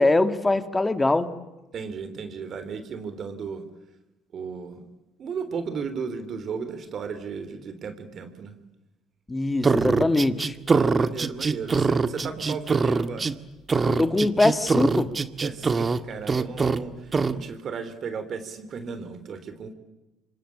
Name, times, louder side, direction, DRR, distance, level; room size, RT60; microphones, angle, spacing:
voice 1, 0.0-1.3 9.3-10.5 13.9-15.1, left 2 dB, 15° left, 10 dB, 2.6 m, -22 dB
voice 2, 1.7-3.6 4.3-4.8 5.2-8.5 10.7-13.3 15.4-19.7, right 5 dB, 50° right, 10 dB, 3.6 m, -35 dB
sound 1, 9.6-13.3 13.7-16.0 16.3-16.8 17.1-17.3, right 4 dB, 30° right, 1.8 m, -23 dB
27.0 x 25.0 x 8.8 m, 1.0 s
hypercardioid pair, 60°, 0 cm